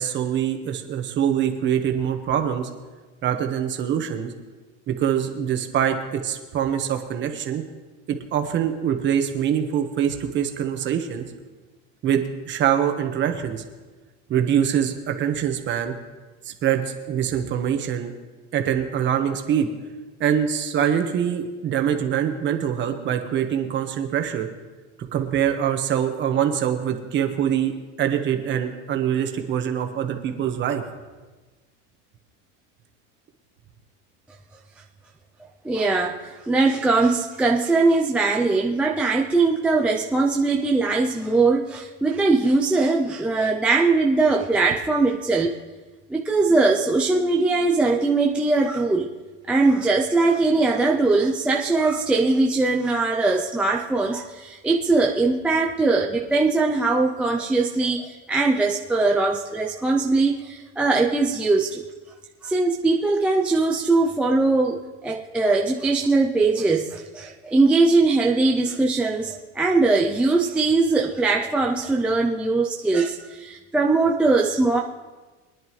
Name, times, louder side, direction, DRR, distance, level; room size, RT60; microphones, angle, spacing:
voice 1, 0.0-2.7 3.2-4.3 4.9-7.6 8.1-11.3 12.0-13.6 14.3-15.9 16.4-16.8 17.1-18.1 18.5-19.7 20.2-24.5 25.1-30.8, right 9 dB, 30° right, 5 dB, 1.3 m, -24 dB
voice 2, 35.6-45.5 46.1-49.1 49.5-61.8 62.4-74.8, right 3 dB, 5° right, -1 dB, 0.3 m, -21 dB
23.0 x 10.5 x 3.1 m, 1.3 s
cardioid pair, 155°, 36 cm